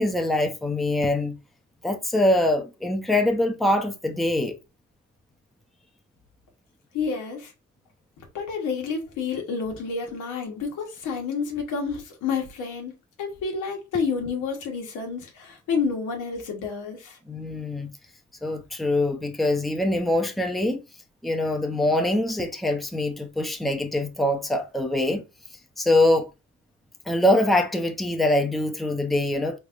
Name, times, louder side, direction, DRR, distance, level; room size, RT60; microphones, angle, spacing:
voice 1, 0.0-1.4 1.8-4.6 17.3-17.9 18.4-20.8 21.2-25.2 25.8-26.3 27.1-29.6, left 1 dB, ahead, 0.6 m, -23 dB
voice 2, 6.9-7.5 8.3-12.9 13.2-17.2, left 5 dB, 90° left, 1.3 m, -29 dB
4.0 x 3.4 x 2.5 m
cardioid pair, 90°, 30 cm